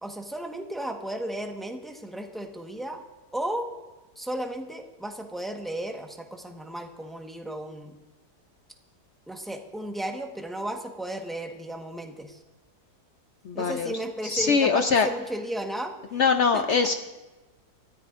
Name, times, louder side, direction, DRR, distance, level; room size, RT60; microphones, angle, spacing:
voice 1, 0.0-3.0 3.3-3.7 4.2-8.0 9.3-12.4 13.5-15.9 16.5-16.9, right 1 dB, ahead, 3 dB, 1.0 m, -34 dB
voice 2, 13.4-13.9 14.2-15.1 16.1-17.0, left 5 dB, 65° left, 7 dB, 0.7 m, -22 dB
25.0 x 14.0 x 2.5 m, 1.1 s
omnidirectional pair, 1.7 m